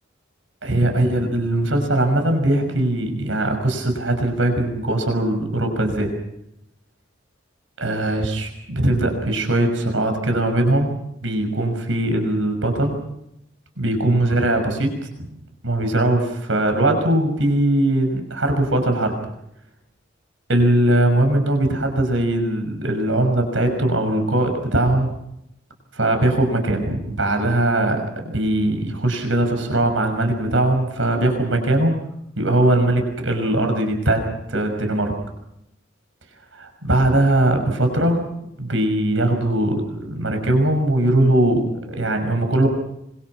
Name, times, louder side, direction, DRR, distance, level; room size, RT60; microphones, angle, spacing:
voice 1, 0.6-6.1 7.8-10.9 11.2-13.0 13.8-14.9 15.2-15.3 15.6-19.1 20.5-25.2 25.9-32.0 32.4-35.1 36.5-38.3 38.6-42.7, right 1 dB, 80° right, 6 dB, 5.9 m, -20 dB
26.0 x 24.5 x 6.1 m, 0.79 s
head